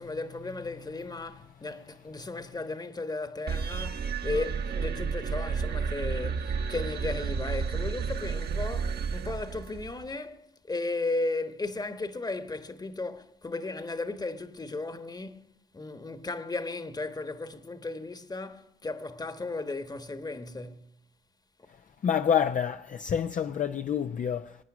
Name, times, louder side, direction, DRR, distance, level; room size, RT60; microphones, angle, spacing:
voice 1, 0.0-20.9, left 3 dB, 20° left, 1.3 m, -35 dB
sound 1, 3.5-10.1, right 6 dB, 55° right, 1.3 m, -31 dB
voice 2, 22.0-24.6, left 8 dB, 40° left, 0.6 m, -28 dB
23.5 x 9.4 x 6.0 m
cardioid pair, 90°, 20 cm